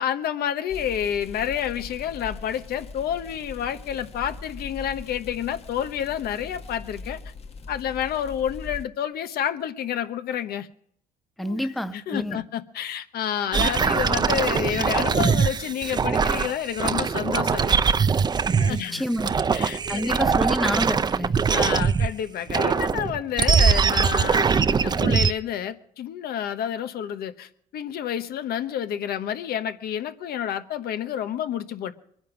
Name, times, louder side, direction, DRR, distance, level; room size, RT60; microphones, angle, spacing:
voice 1, 0.0-7.2 7.7-10.7 11.4-11.6 11.9-17.8 18.5-19.0 19.5-20.2 21.5-31.9, left 9 dB, 65° left, 1.1 m, -29 dB
sound 1, 0.7-8.8, left 3 dB, 35° left, 1.2 m, -41 dB
voice 2, 11.4-12.4 18.7-19.3 19.9-21.4, left 1 dB, ahead, 0.8 m, -28 dB
sound 2, 13.5-18.8 19.1-22.1 22.5-25.3, right 6 dB, 25° right, 0.5 m, -22 dB
22.5 x 10.0 x 6.1 m
cardioid pair, 110°, 17 cm